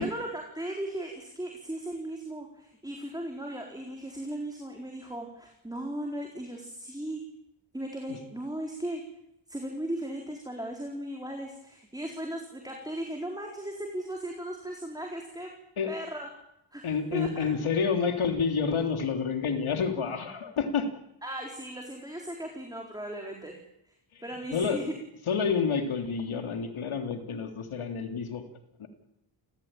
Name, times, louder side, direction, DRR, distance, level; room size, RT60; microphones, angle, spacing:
voice 1, 0.0-7.2 7.7-9.0 9.5-15.5 15.9-16.3 16.7-16.9 17.1-17.5 21.2-23.6 24.2-24.9, right 1 dB, 10° right, 1 dB, 4.1 m, -37 dB
voice 2, 16.8-20.9 24.1-24.2 24.5-24.9 25.3-28.4 28.8-28.9, left 5 dB, 85° left, 4 dB, 3.4 m, -29 dB
29.5 x 16.5 x 9.0 m, 0.80 s
wide cardioid pair, 90°, 48 cm